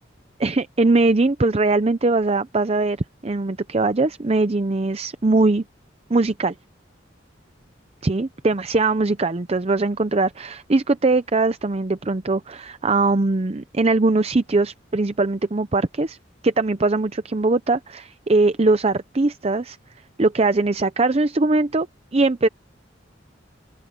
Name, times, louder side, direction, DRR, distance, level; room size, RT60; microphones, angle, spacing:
voice 1, 0.4-3.0 3.2-5.6 6.1-6.5 8.0-16.2 16.4-19.8 20.2-21.9 22.1-22.5, right 3 dB, 35° right, 0.6 m, -21 dB
open air
head